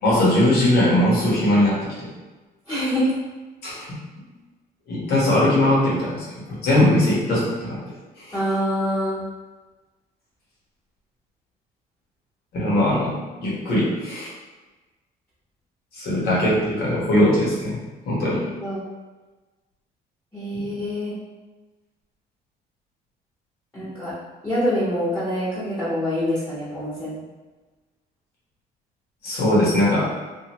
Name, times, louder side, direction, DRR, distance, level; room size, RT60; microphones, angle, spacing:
voice 1, 0.0-2.1 3.6-3.9 4.9-7.8 8.2-8.4 12.5-13.1 13.4-14.3 15.9-17.7 18.0-18.4 20.5-20.6 29.2-30.1, left 1 dB, 70° left, -7 dB, 1.4 m, -20 dB
voice 2, 2.7-3.1 8.3-9.2 18.6-18.9 20.3-21.1 23.7-24.1 24.4-27.2, equal, 10° left, -12 dB, 1.4 m, -25 dB
2.8 x 2.6 x 3.0 m, 1.2 s
cardioid pair, 110°, 17 cm